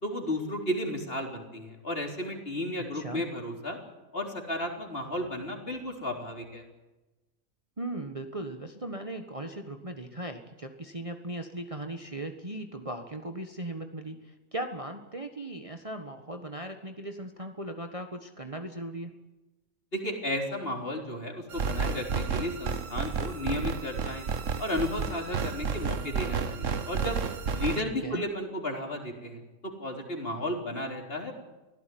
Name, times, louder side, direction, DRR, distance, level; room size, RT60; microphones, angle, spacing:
voice 1, 0.0-3.8 4.1-6.6 19.9-24.3 24.6-27.2 27.5-31.3, left 1 dB, 40° left, 3 dB, 4.2 m, -33 dB
voice 2, 2.9-3.2 7.8-19.1 27.9-28.2, right 1 dB, 25° right, 6 dB, 1.5 m, -38 dB
sound 1, 21.5-27.8, right 5 dB, 65° right, 1.6 m, -31 dB
24.5 x 16.5 x 9.4 m, 1.1 s
omnidirectional pair, 1.5 m